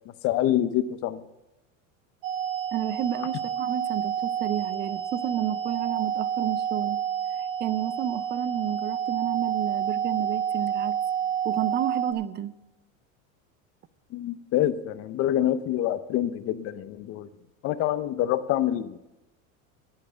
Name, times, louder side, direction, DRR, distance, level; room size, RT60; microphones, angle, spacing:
voice 1, 0.2-1.2 14.1-17.3 17.6-19.0, left 12 dB, 35° left, 0.6 m, -26 dB
sound 1, 2.2-12.1, right 9 dB, 80° right, 1.7 m, -29 dB
voice 2, 2.7-7.0 7.4-11.0 11.4-12.5, right 11 dB, 25° right, 0.5 m, -31 dB
10.5 x 8.7 x 7.9 m
supercardioid pair, 125°, 40 cm